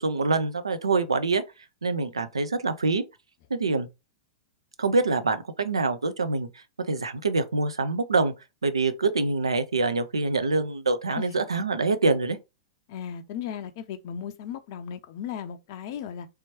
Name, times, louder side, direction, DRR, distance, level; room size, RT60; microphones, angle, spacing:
voice 1, 0.0-1.4 1.8-3.0 3.5-3.9 4.8-8.3 8.6-12.4, right 3 dB, 75° right, 0.5 m, -25 dB
voice 2, 12.9-16.3, left 8 dB, 45° left, 0.5 m, -36 dB
3.4 x 2.9 x 2.7 m
figure-of-eight pair, 100°, 3 cm